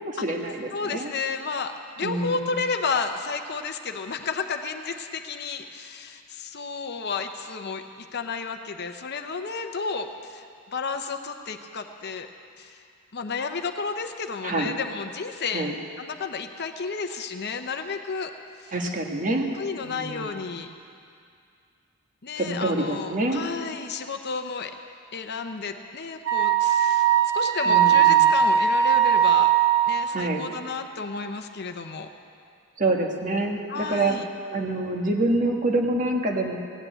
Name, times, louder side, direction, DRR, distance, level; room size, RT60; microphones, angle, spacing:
voice 1, 0.0-1.1 2.0-2.5 14.4-14.7 15.5-15.8 18.7-19.5 19.8-20.4 22.3-23.5 27.6-28.3 30.1-30.4 32.8-34.2 34.5-36.6, right 2 dB, 40° right, 1 dB, 1.4 m, -26 dB
voice 2, 0.7-10.5 10.7-12.3 12.6-12.8 13.1-15.7 16.0-18.3 18.6-18.7 19.6-20.7 22.2-24.7 25.1-29.5 29.9-32.1 33.7-34.3, left 4 dB, 50° left, 7 dB, 0.8 m, -32 dB
Wind instrument woodwind instrument, 26.3-30.1, right 9 dB, 55° right, 1.4 m, -19 dB
16.5 x 8.8 x 9.0 m, 2.3 s
head